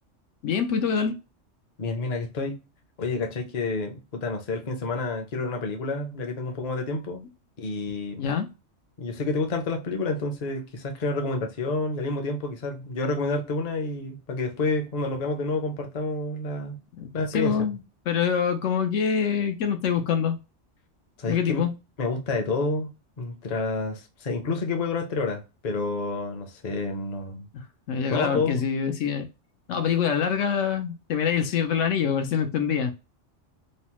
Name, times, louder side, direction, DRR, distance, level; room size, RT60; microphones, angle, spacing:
voice 1, 0.4-1.1 8.2-8.5 17.0-17.1 17.3-17.8 18.1-20.4 21.3-21.7 27.5-27.6 27.9-29.3 29.7-32.9, left 7 dB, 85° left, 1.0 m, -25 dB
voice 2, 1.8-2.6 3.0-7.2 7.6-8.2 9.0-16.8 17.1-17.6 21.2-21.7 22.0-22.9 23.2-27.5 28.1-28.6, left 3 dB, 45° left, 0.6 m, -29 dB
3.1 x 2.0 x 2.9 m
omnidirectional pair, 1.2 m